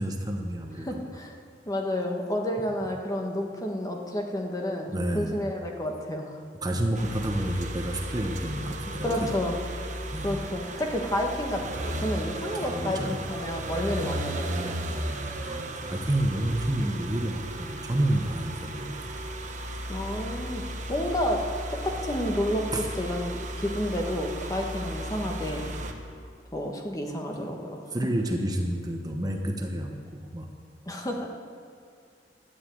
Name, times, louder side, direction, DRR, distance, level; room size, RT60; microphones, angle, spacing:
voice 1, 0.0-1.0 4.9-5.4 6.6-9.3 10.1-10.4 12.6-13.2 15.4-19.1 22.7-22.9 27.4-27.5 27.9-30.5, right 1 dB, 20° right, 2 dB, 1.0 m, -29 dB
voice 2, 0.8-1.3 1.6-6.4 9.0-9.6 10.2-14.8 18.9-19.0 19.9-20.6 20.9-21.4 21.7-22.7 23.0-25.6 26.5-27.8 30.9-31.3, left 1 dB, 20° left, 1 dB, 1.5 m, -30 dB
sound 1, 6.9-25.9, right 1 dB, 45° right, 1.3 m, -35 dB
12.5 x 9.5 x 8.6 m, 2.3 s
head